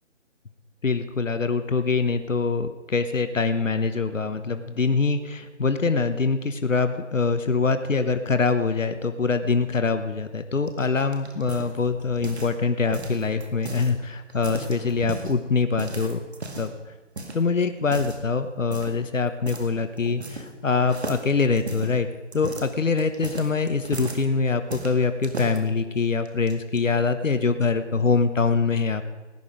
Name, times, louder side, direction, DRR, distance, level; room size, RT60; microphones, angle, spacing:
voice 1, 0.8-16.2 16.6-16.7 17.3-22.1 22.3-29.0, left 4 dB, 90° left, 9 dB, 1.1 m, -24 dB
sound 1, 10.7-12.6 12.9-13.9 14.3-15.3 15.8-16.8 17.2-17.4 17.8-18.2 18.7-19.0 19.5-19.7 20.0-20.6 20.9-24.3 24.7-25.6 26.3-26.8, right 2 dB, 60° right, 2.1 m, -35 dB
17.5 x 10.0 x 5.0 m, 1.3 s
figure-of-eight pair, 165°, 37 cm